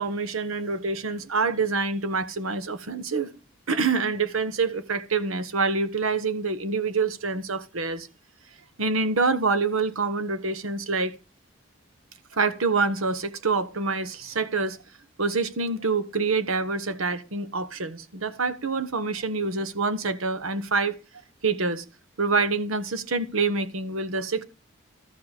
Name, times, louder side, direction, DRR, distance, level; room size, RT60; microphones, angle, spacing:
voice 1, 0.0-3.3 3.7-8.1 8.8-11.2 12.3-14.8 15.2-20.9 21.4-21.8 22.2-24.4, right 4 dB, 85° right, 1.1 m, -26 dB
13.5 x 7.4 x 5.0 m
head